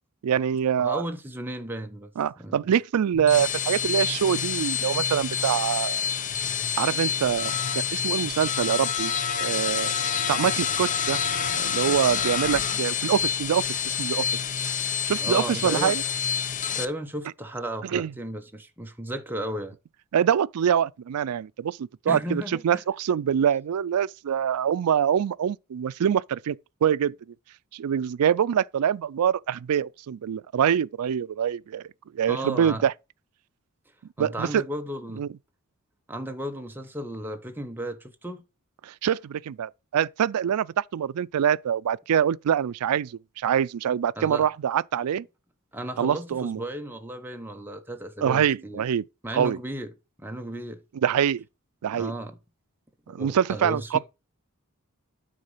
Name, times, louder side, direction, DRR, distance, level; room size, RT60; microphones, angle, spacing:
voice 1, 0.2-1.0 2.2-6.1 6.8-7.6 7.9-9.1 9.4-9.9 10.3-11.2 11.5-14.3 15.1-16.0 17.8-18.1 20.1-26.6 26.8-27.1 27.7-31.8 32.1-32.9 34.2-34.6 35.2-35.3 38.8-45.3 46.0-46.6 48.2-49.0 49.3-49.6 51.0-51.4 51.8-52.1 53.1-54.0, right 8 dB, 80° right, 0.4 m, -25 dB
voice 2, 0.8-2.1 2.4-2.8 15.2-16.0 16.7-19.7 22.1-22.8 32.3-32.8 34.2-35.3 36.1-38.4 44.2-44.5 45.7-48.8 49.2-49.9 50.2-50.8 52.0-52.4 53.1-54.0, right 1 dB, 10° right, 0.9 m, -34 dB
sound 1, 3.1-16.8, left 7 dB, 35° left, 0.6 m, -27 dB
9.6 x 4.0 x 5.6 m
head